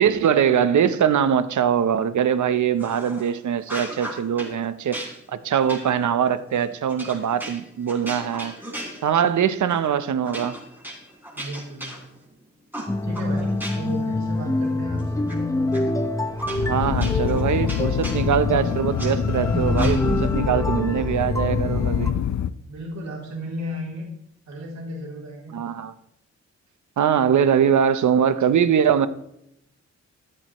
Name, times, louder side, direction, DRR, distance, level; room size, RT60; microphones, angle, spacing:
voice 1, 0.0-8.5 9.0-10.6 16.5-22.1 25.5-25.9 27.0-29.1, right 8 dB, 85° right, 0.9 m, -22 dB
sound 1, 2.8-3.3 3.6-4.5 4.9-9.4 9.7-9.9 10.2-12.3 12.7-14.0 14.4-15.3 15.7-15.8 16.4-19.1 19.7-20.3, right 1 dB, 5° right, 4.2 m, -37 dB
voice 2, 11.3-12.1 13.0-15.3 22.7-24.1 24.5-25.6, equal, 70° right, 3.2 m, -34 dB
sound 2, 12.9-22.1, left 2 dB, 10° left, 0.8 m, -26 dB
sound 3, 16.0-22.5, left 9 dB, 75° left, 0.6 m, -26 dB
14.5 x 13.5 x 3.1 m
wide cardioid pair, 155°, 29 cm